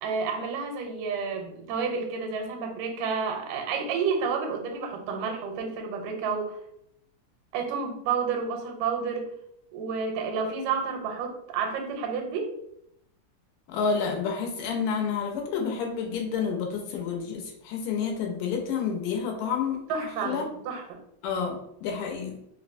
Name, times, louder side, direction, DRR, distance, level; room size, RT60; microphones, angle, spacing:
voice 1, 0.0-6.6 7.5-9.3 9.7-12.5 19.9-21.0, right 5 dB, 85° right, 3 dB, 2.2 m, -30 dB
voice 2, 13.7-20.4 21.2-22.4, left 6 dB, 85° left, 2 dB, 2.2 m, -29 dB
5.1 x 2.1 x 2.5 m, 0.74 s
omnidirectional pair, 3.6 m